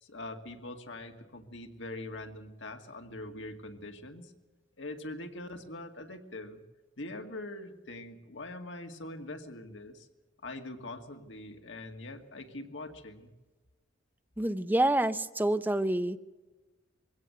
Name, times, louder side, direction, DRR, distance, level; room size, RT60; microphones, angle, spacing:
voice 1, 0.0-4.3 4.8-6.6 7.0-10.1 10.4-13.3, left 2 dB, 70° left, 5 dB, 2.1 m, -43 dB
voice 2, 14.4-16.2, right 1 dB, 10° right, 11 dB, 0.7 m, -27 dB
22.5 x 17.0 x 7.9 m, 1.2 s
head